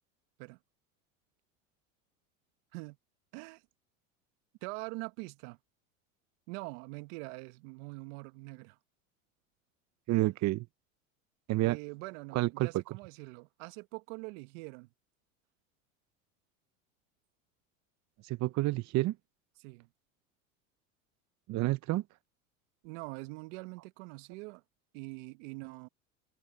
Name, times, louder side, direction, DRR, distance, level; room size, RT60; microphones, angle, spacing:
voice 1, 3.3-3.6 4.6-5.6 6.5-8.8 11.6-14.9 19.6-19.9 22.8-24.6 24.9-25.9, right 26 dB, 65° right, 1.7 m, -44 dB
voice 2, 10.1-10.7 11.5-11.8 12.3-12.7 18.2-19.1 21.5-22.0, right 18 dB, 45° right, 0.8 m, -29 dB
hypercardioid pair, 95°, 40 cm